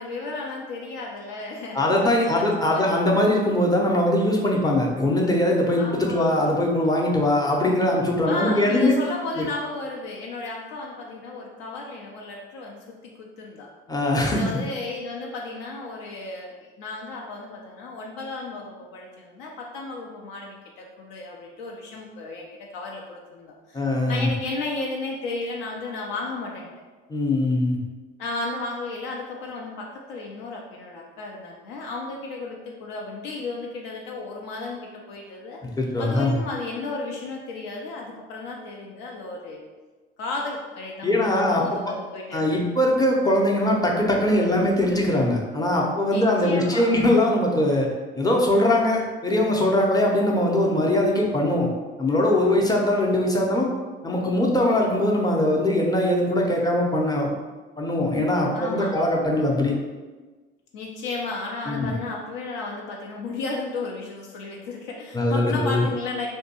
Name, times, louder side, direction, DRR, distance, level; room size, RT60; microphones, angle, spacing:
voice 1, 0.0-2.5 2.7-2.9 5.8-6.4 8.3-13.7 14.3-26.7 28.2-35.6 36.0-39.6 40.2-42.4 46.1-47.0 58.5-59.1 60.7-66.3, left 3 dB, 70° left, -1 dB, 0.5 m, -34 dB
voice 2, 1.7-8.9 9.4-9.5 13.9-14.4 23.7-24.3 27.1-27.8 35.8-36.4 41.0-41.8 42.3-47.9 48.2-51.7 52.0-53.7 54.0-57.3 57.8-59.7 61.7-61.9 65.1-65.8, left 1 dB, 15° left, -2 dB, 0.5 m, -21 dB
2.5 x 2.2 x 2.8 m, 1.3 s
hypercardioid pair, 55°, 29 cm